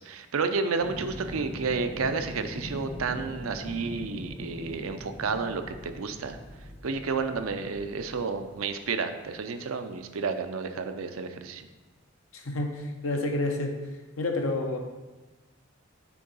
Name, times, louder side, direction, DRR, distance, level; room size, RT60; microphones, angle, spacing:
voice 1, 0.0-6.4 6.8-11.6, right 4 dB, 90° right, 8 dB, 0.5 m, -31 dB
sound 1, 0.8-9.0 10.4-10.5, equal, 10° left, 0.8 m, -41 dB
voice 2, 12.3-13.8 14.2-14.8, left 2 dB, 85° left, 3 dB, 0.9 m, -29 dB
6.1 x 3.8 x 5.5 m, 1.2 s
head